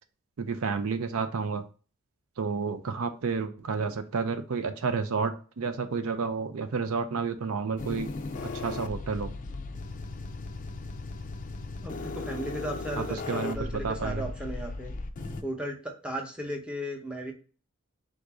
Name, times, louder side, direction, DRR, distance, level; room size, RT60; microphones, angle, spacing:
voice 1, 0.4-1.6 2.4-8.1 8.4-9.3 13.1-14.3, right 5 dB, 75° right, 9 dB, 0.5 m, -30 dB
sound 1, 7.8-15.4, left 3 dB, 35° left, 0.4 m, -37 dB
voice 2, 11.8-14.9 15.4-17.3, equal, 5° right, 1 dB, 0.7 m, -35 dB
3.8 x 2.6 x 4.6 m, 0.38 s
head